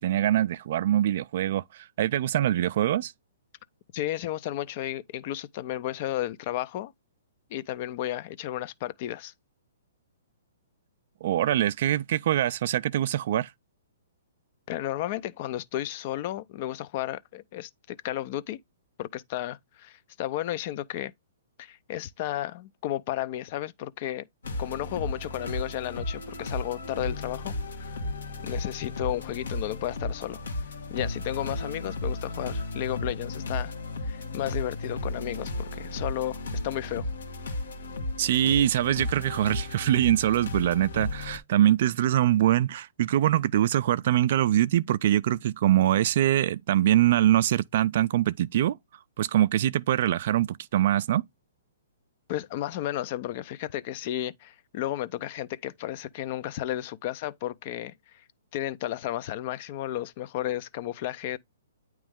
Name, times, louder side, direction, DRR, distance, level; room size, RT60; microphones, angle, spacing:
voice 1, 0.0-3.1 11.2-13.5 38.2-48.8 49.2-51.2, right 12 dB, 55° right, 0.3 m, -23 dB
voice 2, 3.9-6.9 7.5-9.3 14.7-18.6 19.0-21.1 21.6-24.3 24.6-27.9 28.4-30.4 30.9-33.7 34.0-36.4 36.6-37.1 52.3-57.9 58.5-61.4, left 13 dB, 40° left, 0.4 m, -33 dB
sound 1, 24.4-41.4, left 2 dB, 85° left, 1.3 m, -34 dB
8.7 x 3.0 x 3.6 m
hypercardioid pair, 145°, 0 cm